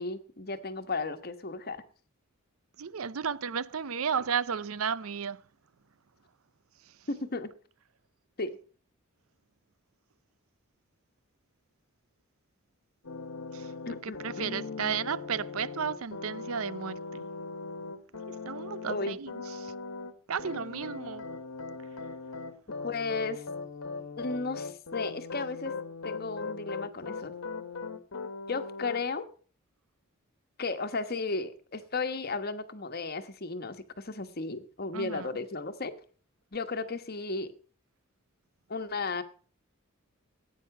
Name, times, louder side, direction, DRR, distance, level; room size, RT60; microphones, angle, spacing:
voice 1, 0.0-1.8 7.1-7.5 8.4-8.6 13.9-15.1 18.9-19.2 22.8-23.4 24.2-25.7 26.0-27.3 28.5-29.2 30.6-35.9 36.5-37.5 38.7-39.2, left 3 dB, 45° left, 1.2 m, -34 dB
voice 2, 2.8-5.4 13.5-13.7 14.0-17.2 18.3-19.7 20.3-21.3 34.9-35.3, right 7 dB, 80° right, 0.6 m, -33 dB
sound 1, 13.0-20.1 20.4-29.0, left 4 dB, 80° left, 1.4 m, -39 dB
15.0 x 9.3 x 5.9 m
head